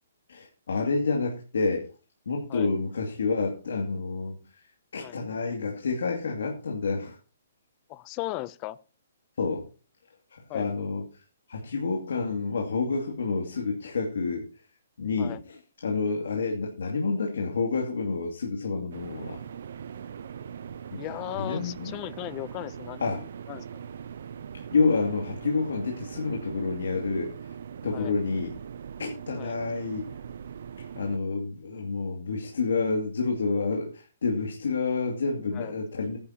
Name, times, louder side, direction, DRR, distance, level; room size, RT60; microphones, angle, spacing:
voice 1, 0.3-1.9 2.3-4.6 4.9-7.2 9.4-9.7 10.3-11.0 11.5-14.5 15.0-19.4 20.9-21.0 21.3-21.9 23.0-23.2 24.7-27.3 27.8-28.6 29.0-30.1 31.0-36.2, left 4 dB, 85° left, 2 dB, 2.4 m, -29 dB
voice 2, 7.9-8.8 10.5-10.7 15.2-15.4 20.9-23.7 27.9-28.1 29.4-29.6 35.5-35.7, left 17 dB, 25° left, 19 dB, 0.5 m, -37 dB
sound 1, 18.9-31.2, right 7 dB, 60° right, 0.7 m, -41 dB
16.5 x 10.5 x 2.9 m, 0.35 s
hypercardioid pair, 165°, 0 cm